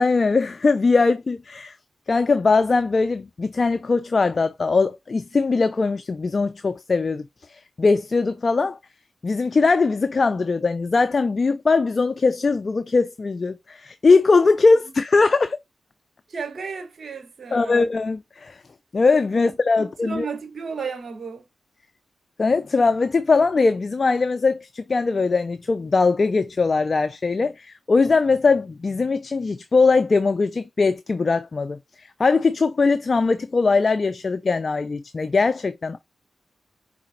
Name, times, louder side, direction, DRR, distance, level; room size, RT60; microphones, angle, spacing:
voice 1, 0.0-1.8 2.1-8.8 9.2-15.6 17.5-18.6 18.9-20.3 22.4-36.0, left 4 dB, 55° left, 0.4 m, -20 dB
voice 2, 16.3-17.9 19.3-21.4, right 5 dB, 65° right, 1.3 m, -34 dB
4.9 x 3.3 x 3.0 m
supercardioid pair, 40°, 0 cm